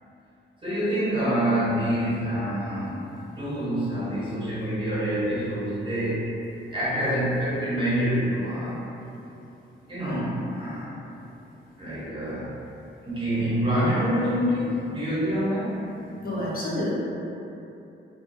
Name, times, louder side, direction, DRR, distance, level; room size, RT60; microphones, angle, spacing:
voice 1, 0.6-3.0 3.4-6.3 6.7-8.8 9.9-11.0 11.8-12.6 13.0-15.8, equal, 25° right, -10 dB, 0.7 m, -26 dB
voice 2, 16.2-16.9, left 1 dB, 45° left, -7 dB, 0.4 m, -28 dB
2.3 x 2.2 x 2.6 m, 2.9 s
wide cardioid pair, 165°, 20 cm